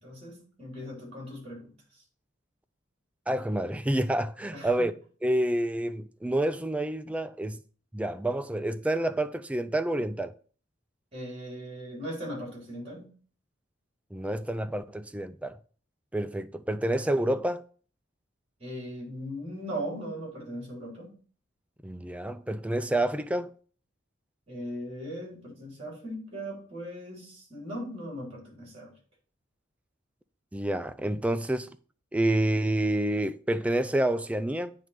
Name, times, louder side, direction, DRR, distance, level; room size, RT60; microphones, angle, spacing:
voice 1, 0.0-2.0 4.5-4.9 11.1-13.1 18.6-21.2 24.5-28.9, equal, 35° right, 3.7 m, -39 dB
voice 2, 3.3-4.9 5.2-7.6 7.9-10.3 14.1-15.6 16.1-17.6 21.8-23.5 30.5-31.7 32.1-34.7, right 1 dB, 5° right, 0.3 m, -28 dB
9.2 x 3.2 x 5.1 m
head